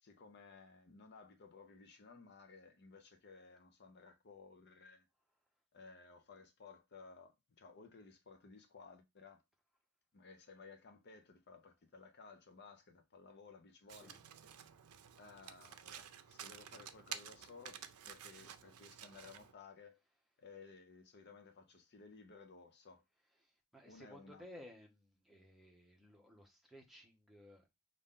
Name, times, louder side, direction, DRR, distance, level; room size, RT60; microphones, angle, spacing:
voice 1, 0.0-5.1 5.7-9.4 10.1-14.2 15.2-20.0 20.4-23.0 23.8-24.4, left 4 dB, 50° left, 0.7 m, -58 dB
Domestic sounds home sounds, 13.9-19.5, right 9 dB, 85° right, 0.5 m, -52 dB
voice 2, 23.4-27.7, left 1 dB, ahead, 0.9 m, -58 dB
5.3 x 2.6 x 3.6 m
head